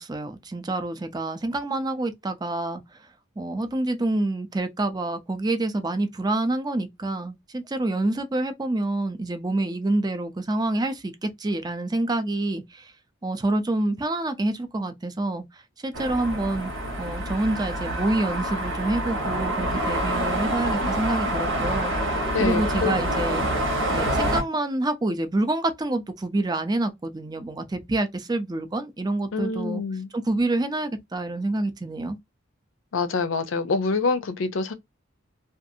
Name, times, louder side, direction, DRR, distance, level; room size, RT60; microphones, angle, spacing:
voice 1, 0.0-2.8 3.4-12.9 13.2-15.4 15.8-16.7 17.0-23.5 23.9-29.8 30.1-32.2, right 2 dB, 20° right, 0.5 m, -27 dB
sound 1, 15.9-24.4, right 1 dB, 75° right, 1.1 m, -27 dB
voice 2, 22.3-23.0 29.3-30.1 32.9-34.7, left 4 dB, 70° left, 0.5 m, -26 dB
2.5 x 2.4 x 2.6 m
head